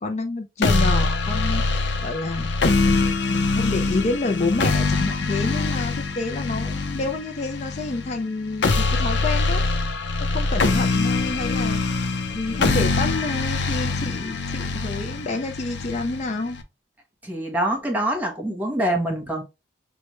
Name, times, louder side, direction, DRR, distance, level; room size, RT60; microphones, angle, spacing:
voice 1, 0.0-2.5 2.8-9.6 10.3-11.8 12.3-16.6, left 3 dB, 40° left, 0.4 m, -28 dB
sound 1, 0.6-16.6, left 3 dB, 80° left, 0.7 m, -23 dB
voice 2, 17.2-19.4, right 1 dB, 10° right, 1.2 m, -25 dB
6.0 x 2.2 x 3.1 m
head